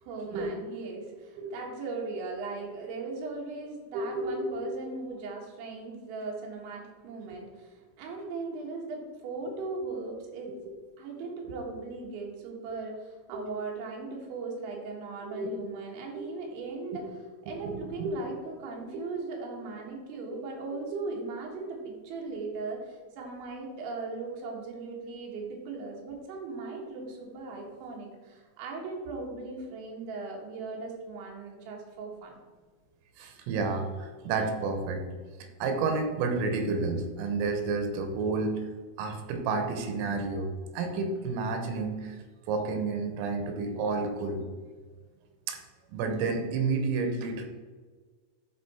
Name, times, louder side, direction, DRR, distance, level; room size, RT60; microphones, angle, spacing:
voice 1, 0.0-10.5 11.0-32.4, right 3 dB, 70° right, -1 dB, 3.6 m, -38 dB
voice 2, 3.9-4.6 13.3-13.4 15.3-15.6 16.2-16.3 16.9-17.1 17.5-18.2 18.9-19.0 20.9-21.0 33.2-35.0 35.6-38.7 39.0-42.2 42.5-44.4 45.5-45.6 45.9-47.5, right 3 dB, 85° right, 6 dB, 3.5 m, -30 dB
11.5 x 4.2 x 4.2 m, 1.4 s
omnidirectional pair, 5.9 m